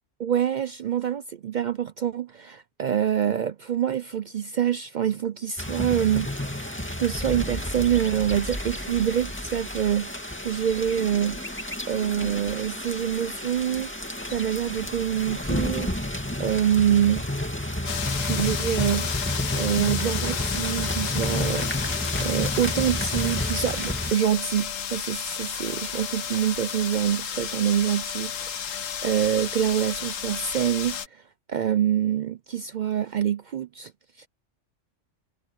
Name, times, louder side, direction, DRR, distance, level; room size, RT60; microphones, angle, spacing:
voice 1, 0.2-6.7 7.0-10.1 10.4-11.4 11.9-13.9 14.3-17.2 18.2-19.1 19.5-21.7 22.2-31.2 31.5-33.9 34.2-34.3, right 9 dB, 65° right, 0.4 m, -26 dB
sound 1, 5.6-24.1, left 1 dB, 10° left, 2.4 m, -31 dB
sound 2, 17.9-31.1, left 8 dB, 90° left, 1.4 m, -32 dB
omnidirectional pair, 1.3 m